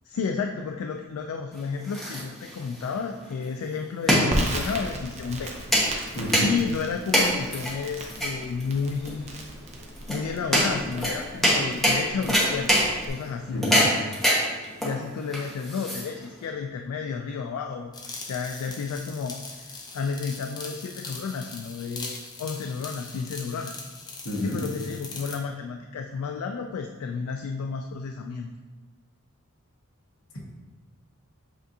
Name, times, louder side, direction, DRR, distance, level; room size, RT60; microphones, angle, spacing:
voice 1, 0.0-5.5 6.4-9.4 10.1-12.7 13.0-14.1 14.5-23.8 24.4-28.5, left 5 dB, 90° left, 4 dB, 0.3 m, -32 dB
sound 1, 1.5-16.4, equal, ahead, 0.9 m, -26 dB
Crackle, 4.3-13.1, right 1 dB, 30° right, 0.6 m, -36 dB
voice 2, 6.1-6.5 13.5-13.8 24.2-24.6 30.3-30.4, equal, 70° left, -2 dB, 1.0 m, -29 dB
sound 2, 17.9-25.4, left 3 dB, 20° left, 0.5 m, -41 dB
7.6 x 2.6 x 2.7 m, 1.3 s
head